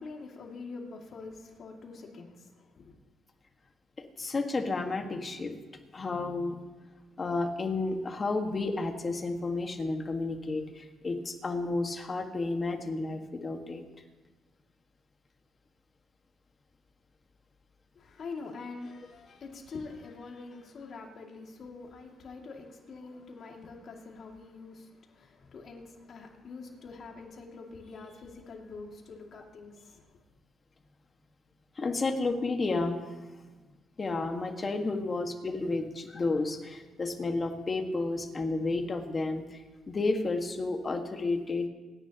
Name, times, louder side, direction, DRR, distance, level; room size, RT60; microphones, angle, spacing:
voice 1, 0.0-2.9 18.0-30.2, left 4 dB, 55° left, 2.4 m, -45 dB
voice 2, 4.2-5.5 5.9-6.6 7.2-13.8 31.8-33.0 34.0-39.6 39.9-41.7, left 3 dB, 35° left, 1.7 m, -31 dB
27.5 x 10.0 x 3.0 m
cardioid pair, 90°, 0 cm